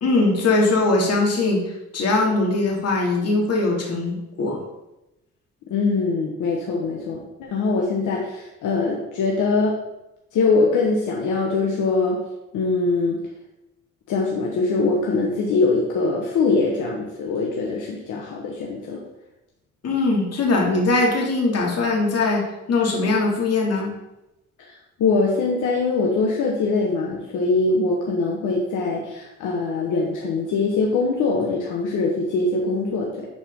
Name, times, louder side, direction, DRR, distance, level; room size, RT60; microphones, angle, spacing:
voice 1, 0.0-1.6 1.9-4.6 19.8-22.4 22.7-23.9, left 3 dB, 55° left, -2 dB, 2.4 m, -21 dB
voice 2, 5.7-9.7 10.3-12.2 12.5-13.2 14.1-19.0 24.6-24.7 25.0-33.3, left 3 dB, 80° left, -2 dB, 1.3 m, -22 dB
11.0 x 4.4 x 3.7 m, 0.93 s
cardioid pair, 90°, 30 cm